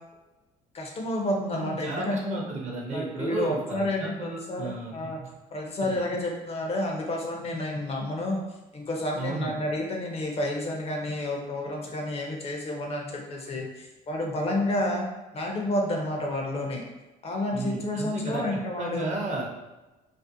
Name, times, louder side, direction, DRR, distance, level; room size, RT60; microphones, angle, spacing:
voice 1, 0.7-2.4 2.9-5.2 5.5-8.4 8.7-15.1 15.3-16.8 17.2-19.1, left 1 dB, 35° left, 0 dB, 0.5 m, -30 dB
voice 2, 1.5-5.3 5.8-6.0 9.2-9.5 17.5-19.5, right 2 dB, 45° right, -1 dB, 0.6 m, -34 dB
2.5 x 2.1 x 2.6 m, 1.1 s
cardioid pair, 110°, 17 cm